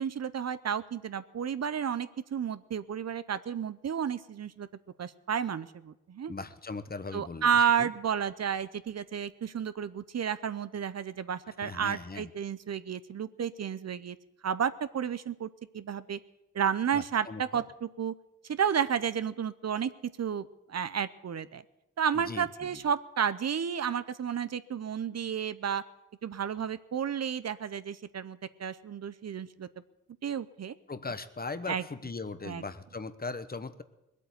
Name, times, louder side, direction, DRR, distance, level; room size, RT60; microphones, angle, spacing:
voice 1, 0.0-4.7 5.0-6.3 7.1-14.2 14.4-15.5 15.7-16.2 16.5-18.1 18.5-19.9 20.2-21.6 22.0-25.8 26.2-29.7 30.2-30.7 31.7-31.8 32.4-32.6, right 8 dB, 55° right, 14 dB, 0.7 m, -31 dB
voice 2, 6.3-7.9 11.5-12.3 16.9-17.6 22.1-22.8 30.9-33.8, left 3 dB, 30° left, 12 dB, 1.0 m, -39 dB
19.5 x 8.4 x 8.0 m, 0.96 s
cardioid pair, 60°, 32 cm